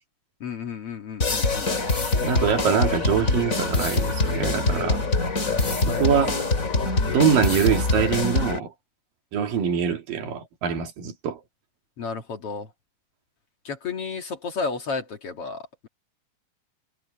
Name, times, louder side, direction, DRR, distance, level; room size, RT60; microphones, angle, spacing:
voice 1, 0.4-1.7 5.5-6.2 12.0-12.7 13.6-15.9, left 4 dB, 50° left, 2.4 m, -32 dB
sound 1, 1.2-8.6, left 3 dB, 25° left, 2.6 m, -24 dB
voice 2, 2.2-5.0 6.0-6.4 7.1-8.7 9.3-11.4, right 7 dB, 80° right, 4.1 m, -24 dB
omnidirectional pair, 3.9 m